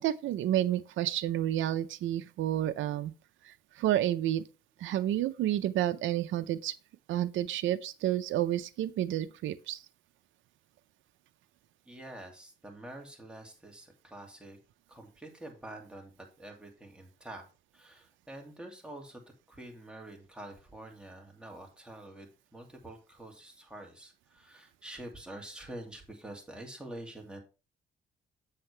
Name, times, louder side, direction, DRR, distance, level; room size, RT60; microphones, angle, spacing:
voice 1, 0.0-3.1 3.4-4.4 4.8-6.7 7.1-9.8, right 12 dB, 75° right, 0.6 m, -30 dB
voice 2, 11.8-14.6 14.9-17.5 17.7-27.4, right 1 dB, 5° right, 2.4 m, -47 dB
7.7 x 6.4 x 3.3 m
cardioid pair, 90°, 20 cm